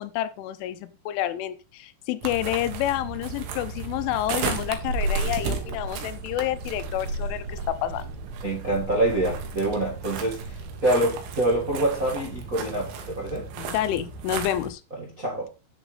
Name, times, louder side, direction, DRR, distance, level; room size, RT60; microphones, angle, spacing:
voice 1, 0.0-8.0 13.6-14.8, left 12 dB, 80° left, 3.1 m, -29 dB
sound 1, 2.2-14.7, right 4 dB, 80° right, 4.0 m, -33 dB
voice 2, 8.4-13.5 15.0-15.5, right 1 dB, 45° right, 1.0 m, -26 dB
10.0 x 7.1 x 4.0 m
omnidirectional pair, 5.6 m